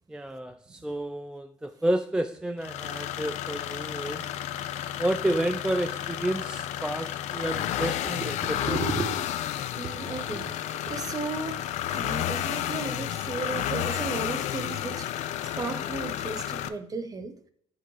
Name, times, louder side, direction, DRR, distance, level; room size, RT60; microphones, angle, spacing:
voice 1, 0.1-4.3 5.0-8.8, right 1 dB, 5° right, 0.3 m, -30 dB
sound 1, 2.6-16.7, left 11 dB, 70° left, 0.5 m, -32 dB
voice 2, 8.6-9.4 9.7-15.3 15.6-17.5, right 4 dB, 30° right, 0.9 m, -35 dB
7.9 x 3.7 x 4.8 m
cardioid pair, 120°, 13 cm